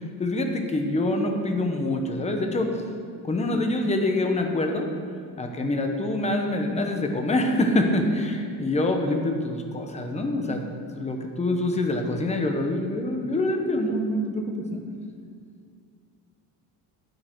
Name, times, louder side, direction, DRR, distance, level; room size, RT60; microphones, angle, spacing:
voice 1, 0.2-2.7 3.2-4.9 5.4-10.6 10.9-14.8, left 1 dB, 20° left, 3 dB, 0.9 m, -25 dB
9.8 x 7.8 x 4.6 m, 2.2 s
cardioid pair, 165°, 37 cm